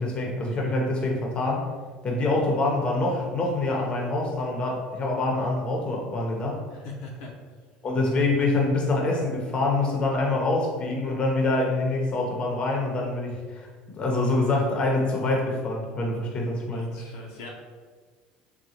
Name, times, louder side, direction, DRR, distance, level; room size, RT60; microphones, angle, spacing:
voice 1, 0.0-1.6 2.0-6.6 7.8-16.9, left 2 dB, 35° left, -1 dB, 0.7 m, -25 dB
voice 2, 6.7-7.3 16.7-17.5, left 3 dB, 80° left, -2 dB, 0.6 m, -41 dB
3.7 x 2.2 x 2.9 m, 1.5 s
supercardioid pair, 95°, 3 cm